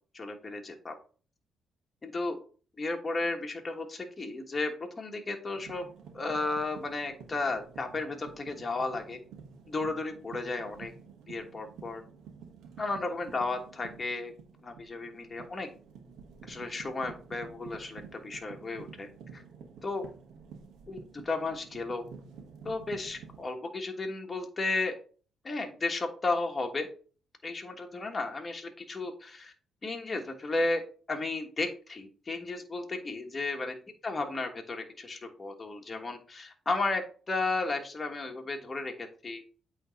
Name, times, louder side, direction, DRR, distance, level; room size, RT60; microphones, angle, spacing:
voice 1, 0.1-0.9 2.0-2.4 2.8-5.8 6.1-9.2 9.7-10.9 11.3-12.0 12.8-14.3 14.6-15.7 16.4-19.1 19.3-19.4 19.8-20.0 20.9-22.0 22.6-25.0 25.4-26.9 27.4-29.5 29.8-30.8 31.1-33.7 34.0-39.4, left 3 dB, 25° left, 3 dB, 1.4 m, -34 dB
sound 1, 5.5-23.4, right 6 dB, 80° right, 1.3 m, -50 dB
8.4 x 3.3 x 4.0 m, 0.41 s
cardioid pair, 90°, 0 cm